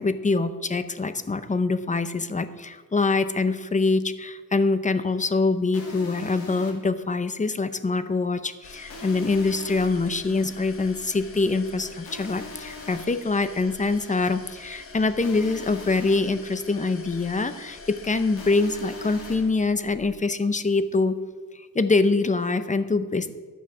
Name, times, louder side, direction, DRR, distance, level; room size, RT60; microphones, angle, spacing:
voice 1, 0.0-21.2 21.5-23.3, left 3 dB, 20° left, 12 dB, 0.6 m, -24 dB
sound 1, 5.7-6.7 8.9-9.9 12.1-13.0 15.2-16.2 18.4-19.4, left 3 dB, 85° left, 2.1 m, -41 dB
sound 2, 8.6-20.1, left 3 dB, 40° left, 1.1 m, -45 dB
12.0 x 7.1 x 6.0 m, 1.4 s
wide cardioid pair, 115°, 35 cm